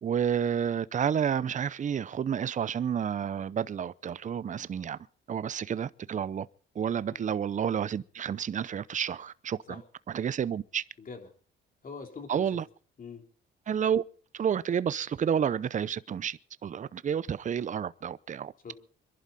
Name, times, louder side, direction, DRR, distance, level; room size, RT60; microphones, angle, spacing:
voice 1, 0.0-5.0 5.3-6.5 6.8-9.6 10.1-10.8 12.3-12.6 13.7-14.0 14.3-18.5, right 8 dB, 40° right, 0.6 m, -30 dB
voice 2, 11.0-11.3 11.8-12.6 13.0-13.2 18.6-18.7, left 5 dB, 45° left, 3.5 m, -43 dB
25.0 x 11.5 x 4.1 m
cardioid pair, 90°, 20 cm